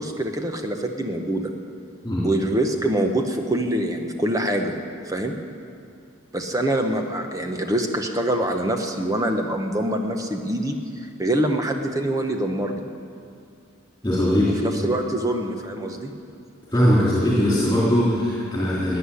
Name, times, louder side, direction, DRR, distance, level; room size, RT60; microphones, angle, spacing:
voice 1, 0.0-1.5 2.2-4.7 5.1-5.3 6.3-12.9 14.5-16.1, right 1 dB, 15° right, 4 dB, 1.0 m, -25 dB
voice 2, 14.0-14.6 16.7-19.0, equal, 15° left, -7 dB, 3.4 m, -20 dB
15.0 x 9.6 x 9.9 m, 2.5 s
head